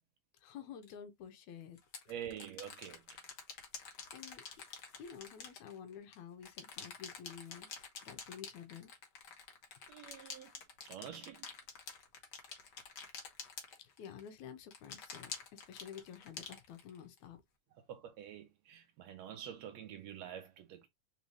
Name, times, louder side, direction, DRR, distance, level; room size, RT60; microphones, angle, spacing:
voice 1, 0.4-1.8 3.8-4.4 5.0-8.9 13.8-17.4, left 8 dB, 80° left, 2.1 m, -51 dB
sound 1, 0.8-0.9 1.8-6.2 6.4-14.3 14.7-17.2, left 5 dB, 60° left, 1.1 m, -48 dB
voice 2, 2.1-3.0 9.9-10.5 10.8-11.5 17.7-20.9, right 9 dB, 75° right, 1.7 m, -47 dB
4.2 x 4.0 x 3.1 m
omnidirectional pair, 3.5 m